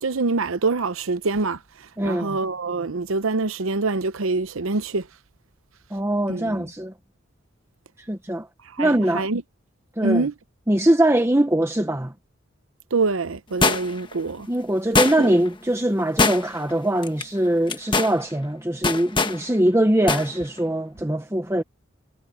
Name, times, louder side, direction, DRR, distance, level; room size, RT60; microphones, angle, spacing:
voice 1, 0.0-1.6 2.0-5.1 6.3-6.6 8.8-9.4 10.0-10.3 12.9-14.5 15.2-15.3, right 3 dB, 85° right, 0.8 m, -25 dB
voice 2, 2.0-2.4 5.9-6.9 8.1-8.5 8.8-9.3 10.0-10.3 10.7-12.1 14.5-21.6, right 1 dB, 15° right, 1.0 m, -22 dB
sound 1, 13.6-14.1 15.0-15.5 16.2-16.7 17.0-17.2 17.7-18.1 18.8-19.4 20.1-20.3 20.6-20.7, left 3 dB, 25° left, 1.3 m, -21 dB
head